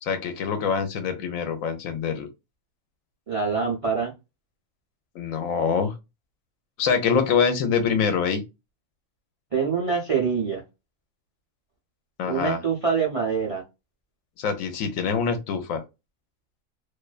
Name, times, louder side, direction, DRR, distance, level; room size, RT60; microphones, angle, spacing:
voice 1, 0.0-2.3 5.1-5.9 6.8-8.4 12.2-12.6 14.4-15.8, left 6 dB, 80° left, 1.0 m, -25 dB
voice 2, 3.3-4.1 9.5-10.6 12.2-13.6, right 5 dB, 50° right, 0.4 m, -25 dB
2.6 x 2.2 x 2.3 m
omnidirectional pair, 1.4 m